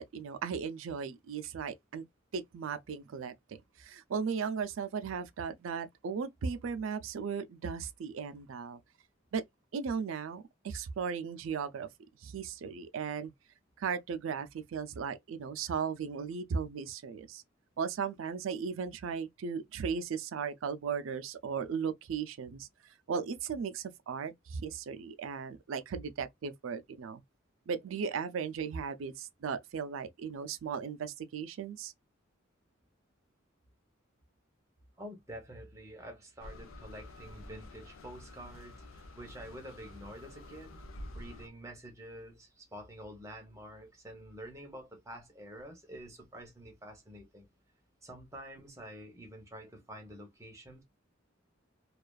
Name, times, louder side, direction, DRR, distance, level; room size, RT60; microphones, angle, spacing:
voice 1, 0.0-2.0 2.3-8.8 9.3-9.4 9.7-11.9 12.2-13.3 13.8-17.4 17.8-22.7 23.1-27.2 27.7-31.9, right 6 dB, 75° right, 0.4 m, -36 dB
voice 2, 35.0-40.8 41.1-47.5 48.0-50.8, equal, 15° right, 0.7 m, -48 dB
sound 1, 36.4-41.5, left 1 dB, 85° left, 0.5 m, -49 dB
2.3 x 2.3 x 2.3 m
head